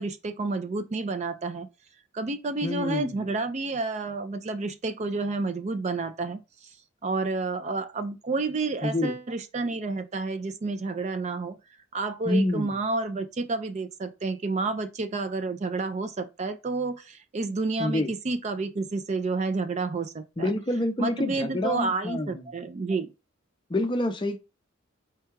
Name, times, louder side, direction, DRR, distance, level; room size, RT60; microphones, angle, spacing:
voice 1, 0.0-1.7 2.1-6.7 7.0-11.6 11.9-20.5 21.0-23.1, right 3 dB, 35° right, 0.4 m, -30 dB
voice 2, 2.6-3.2 8.8-9.1 12.3-12.7 17.8-18.1 20.4-22.5 23.7-24.4, left 1 dB, 25° left, 0.5 m, -27 dB
4.5 x 2.3 x 4.5 m
head